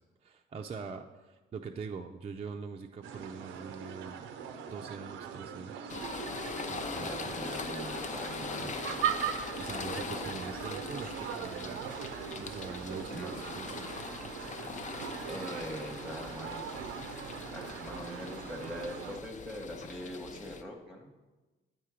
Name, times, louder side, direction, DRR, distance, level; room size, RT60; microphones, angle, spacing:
voice 1, 0.2-4.2 4.7-5.9 6.7-7.7 8.5-8.8 9.3-11.8 12.4-14.0, right 5 dB, 30° right, 2 dB, 0.4 m, -43 dB
sound 1, 3.0-19.2, right 8 dB, 90° right, 0.6 m, -40 dB
sound 2, 5.9-20.6, left 5 dB, 40° left, 0.5 m, -42 dB
voice 2, 7.0-8.8 13.1-13.3 15.3-16.7 17.5-21.1, equal, ahead, 0 dB, 0.9 m, -42 dB
8.9 x 4.5 x 4.9 m, 1.2 s
cardioid pair, 90°, 20 cm